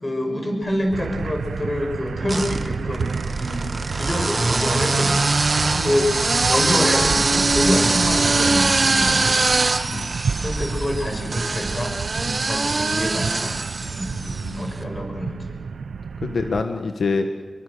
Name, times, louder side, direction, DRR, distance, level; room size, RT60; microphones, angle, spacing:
voice 1, 0.0-5.2 5.8-9.4 10.4-14.3 14.5-15.6, left 1 dB, 25° left, 3 dB, 5.9 m, -26 dB
sound 1, 0.9-1.5 2.3-14.6, right 3 dB, 40° right, 1.6 m, -22 dB
sound 2, 0.9-16.6, right 5 dB, 85° right, 0.6 m, -31 dB
voice 2, 14.2-14.8 16.2-17.3, left 4 dB, 70° left, 6 dB, 1.5 m, -26 dB
27.0 x 22.5 x 6.7 m, 1.5 s
wide cardioid pair, 140°, 0 cm